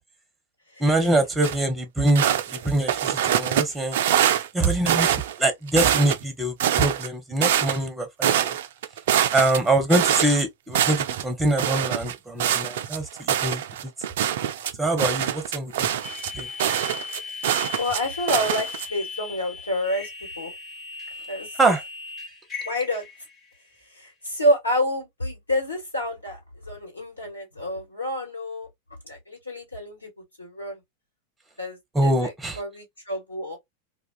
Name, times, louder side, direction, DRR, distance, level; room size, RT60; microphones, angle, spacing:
voice 1, 0.8-4.0 4.5-8.5 9.3-13.6 14.8-15.9 16.3-16.5 21.6-21.8 31.9-32.6, right 2 dB, 10° right, 0.8 m, -24 dB
sound 1, 1.4-1.5 2.1-3.6 3.9-5.3 5.7-6.2 6.6-7.9 8.2-10.4 10.7-11.2 11.6-18.0 18.3-18.9, right 10 dB, 55° right, 0.4 m, -24 dB
sound 2, 16.0-23.6, left 4 dB, 25° left, 1.0 m, -37 dB
voice 2, 17.8-20.1 20.4-20.5 21.3-21.6 22.6-23.0 23.9-28.7 29.0-30.1 30.4-30.8 31.6-33.6, left 1 dB, 80° left, 1.5 m, -28 dB
2.4 x 2.3 x 2.3 m
figure-of-eight pair, 90°, 0 cm